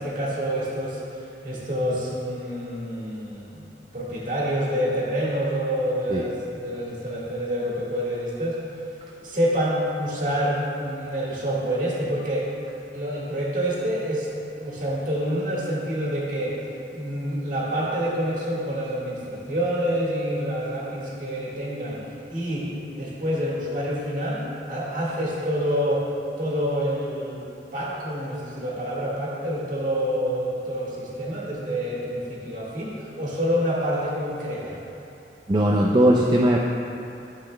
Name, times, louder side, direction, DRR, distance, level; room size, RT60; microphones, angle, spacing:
voice 1, 0.0-3.7 3.9-8.6 9.2-12.5 12.9-14.3 14.6-16.6 16.9-22.0 22.3-26.1 26.4-27.4 27.7-34.8, equal, 50° right, -6 dB, 1.8 m, -27 dB
voice 2, 35.5-36.6, right 1 dB, 25° right, -3 dB, 0.4 m, -19 dB
12.0 x 7.5 x 2.3 m, 2.6 s
head